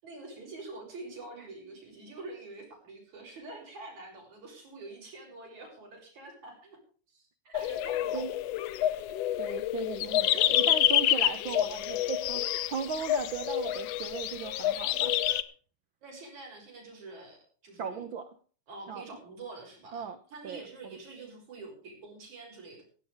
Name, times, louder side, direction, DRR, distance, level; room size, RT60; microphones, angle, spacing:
voice 1, 0.0-6.8 7.1-8.3 16.0-17.4 17.6-18.0 18.7-20.1 20.3-22.8, right 3 dB, 60° right, 0 dB, 7.9 m, -46 dB
sound 1, 7.5-15.4, left 13 dB, 75° left, 1.5 m, -28 dB
voice 2, 9.4-15.4 17.8-18.3 18.9-19.0 19.9-20.2 20.4-20.7, right 6 dB, 75° right, 10 dB, 1.1 m, -37 dB
16.5 x 16.0 x 3.5 m, 0.42 s
omnidirectional pair, 3.7 m